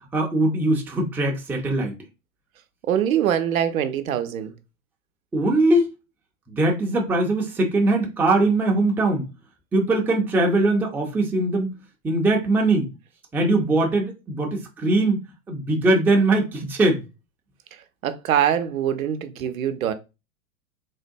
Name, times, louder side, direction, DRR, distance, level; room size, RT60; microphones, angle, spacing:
voice 1, 0.1-1.9 5.3-5.9 6.5-9.3 9.7-11.8 12.0-12.9 13.3-17.0, right 2 dB, 5° right, 0.4 m, -21 dB
voice 2, 2.9-4.5 18.0-19.9, right 10 dB, 80° right, 0.6 m, -23 dB
3.6 x 2.2 x 2.6 m
hypercardioid pair, 100°, 41 cm